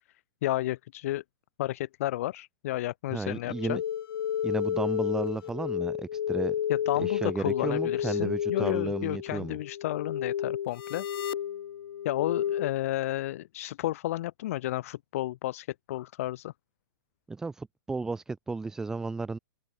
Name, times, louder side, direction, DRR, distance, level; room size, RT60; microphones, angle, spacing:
voice 1, 0.4-1.2 1.6-3.8 6.7-11.1 12.0-16.5, left 15 dB, 40° left, 0.6 m, -32 dB
voice 2, 3.1-3.8 4.4-6.6 7.0-9.6 17.3-19.4, right 3 dB, 5° right, 1.1 m, -33 dB
sound 1, 3.5-12.7, left 9 dB, 70° left, 1.4 m, -31 dB
hypercardioid pair, 175°, 12 cm